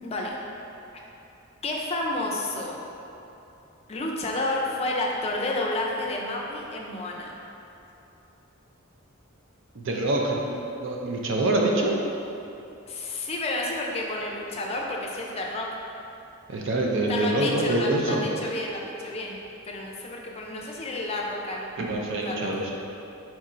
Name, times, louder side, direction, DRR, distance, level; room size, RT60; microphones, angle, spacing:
voice 1, 0.0-0.4 1.6-2.8 3.9-7.4 12.9-15.7 17.1-19.4 19.6-22.0 22.2-22.5, left 2 dB, 30° left, -1 dB, 0.4 m, -30 dB
voice 2, 9.7-10.5 10.8-11.9 16.5-18.3 21.8-22.7, right 2 dB, 65° right, -1 dB, 0.5 m, -25 dB
4.5 x 4.2 x 2.5 m, 2.9 s
head